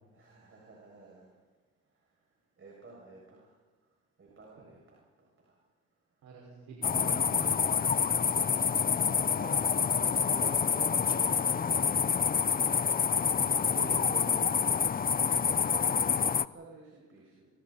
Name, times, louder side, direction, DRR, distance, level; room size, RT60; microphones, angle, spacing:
voice 1, 0.1-1.3 2.6-3.5 4.2-5.0 5.4-5.6 9.0-12.2 15.7-17.5, right 3 dB, 45° right, -3 dB, 7.4 m, -50 dB
voice 2, 6.2-7.7 13.5-14.5, right 4 dB, 80° right, -3 dB, 6.0 m, -44 dB
sound 1, 6.8-16.4, left 6 dB, 30° left, 0.6 m, -27 dB
28.0 x 24.5 x 4.5 m, 1.3 s
cardioid pair, 90°, 30 cm